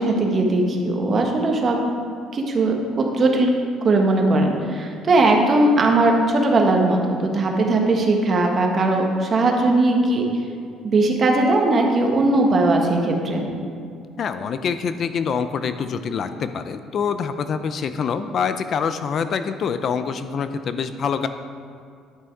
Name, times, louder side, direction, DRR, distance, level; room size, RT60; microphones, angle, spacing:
voice 1, 0.0-1.8 2.3-3.5 3.8-10.2 10.8-13.5, right 2 dB, 35° right, 1 dB, 1.4 m, -19 dB
voice 2, 14.2-21.3, left 6 dB, 45° left, 10 dB, 0.4 m, -25 dB
11.0 x 6.3 x 4.7 m, 2.3 s
cardioid pair, 120°, 0 cm